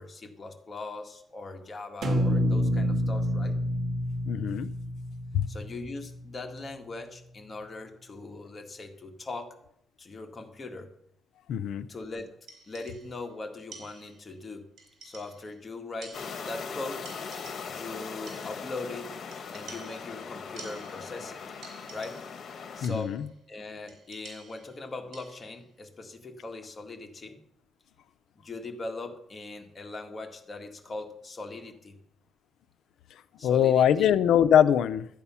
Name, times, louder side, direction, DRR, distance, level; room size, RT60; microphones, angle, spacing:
voice 1, 0.0-3.6 5.5-9.6 10.0-10.9 11.9-12.4 12.7-14.7 15.0-17.0 17.7-19.1 19.5-21.4 21.9-22.2 22.8-23.2 23.5-27.4 28.4-31.9 33.4-34.1, left 2 dB, 25° left, 3 dB, 1.9 m, -40 dB
sound 1, 2.0-6.2, equal, 55° right, 2.1 m, -28 dB
voice 2, 4.3-4.7 5.3-5.5 11.5-11.9 22.8-23.2 33.4-35.1, left 9 dB, 85° left, 14 dB, 0.6 m, -22 dB
sound 2, 12.5-13.3 13.7-14.4 14.8-15.6 16.0-16.8 17.1-17.9 18.3-18.8 19.3-21.3 21.6-22.5 22.8-23.3 23.9-25.6, right 4 dB, 75° right, 4.2 m, -50 dB
sound 3, 16.1-22.9, left 5 dB, 55° left, 1.5 m, -40 dB
13.0 x 8.5 x 5.7 m, 0.73 s
cardioid pair, 140°, 0 cm